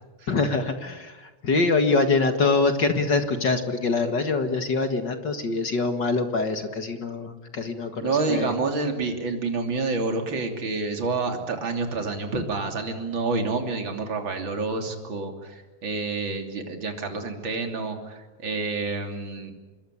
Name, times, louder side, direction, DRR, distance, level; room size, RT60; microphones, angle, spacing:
voice 1, 0.3-8.5, left 3 dB, 40° left, 7 dB, 1.9 m, -24 dB
voice 2, 8.0-19.5, right 3 dB, 40° right, 4 dB, 3.5 m, -28 dB
26.0 x 22.0 x 10.0 m, 1.2 s
omnidirectional pair, 3.7 m